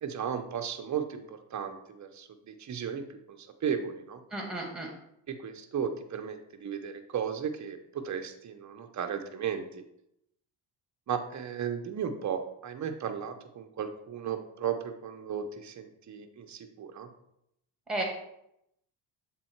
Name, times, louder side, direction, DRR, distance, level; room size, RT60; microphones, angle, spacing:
voice 1, 0.0-4.2 5.3-9.8 11.1-17.1, right 7 dB, 35° right, 6 dB, 0.8 m, -35 dB
voice 2, 4.3-4.9 17.9-18.0, right 2 dB, ahead, 0 dB, 2.2 m, -33 dB
7.4 x 3.8 x 4.5 m, 0.79 s
cardioid pair, 90°, 47 cm